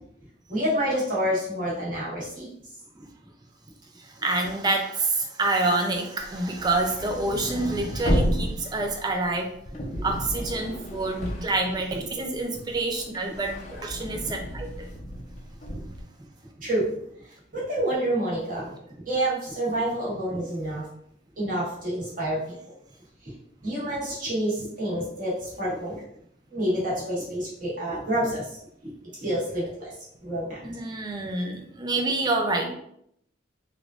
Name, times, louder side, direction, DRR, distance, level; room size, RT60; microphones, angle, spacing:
voice 1, 0.5-2.5 16.6-16.9 17.5-18.8 19.1-20.9 21.4-22.5 23.6-26.0 26.5-28.5 28.8-28.9 29.2-29.9 30.2-30.8, right 1 dB, 45° right, -7 dB, 1.3 m, -28 dB
voice 2, 4.0-9.5 10.0-14.7 30.6-32.7, right 2 dB, 20° right, 3 dB, 0.4 m, -27 dB
sound 1, 6.2-12.4 12.7-16.0, equal, 35° left, 0.5 m, -32 dB
3.5 x 2.4 x 2.3 m, 0.72 s
head